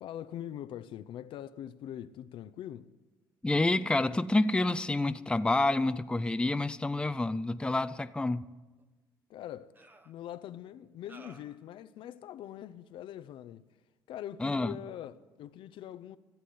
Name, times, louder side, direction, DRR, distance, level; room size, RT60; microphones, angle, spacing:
voice 1, 0.0-2.9 9.3-9.7 10.0-13.7 14.1-16.2, left 11 dB, 70° left, 0.6 m, -43 dB
voice 2, 3.4-8.4 14.4-14.7, left 2 dB, 10° left, 0.5 m, -28 dB
sound 1, 8.8-8.9 9.7-10.1 11.1-11.6, right 2 dB, 20° right, 1.0 m, -54 dB
15.0 x 8.2 x 9.4 m
supercardioid pair, 75°, 9 cm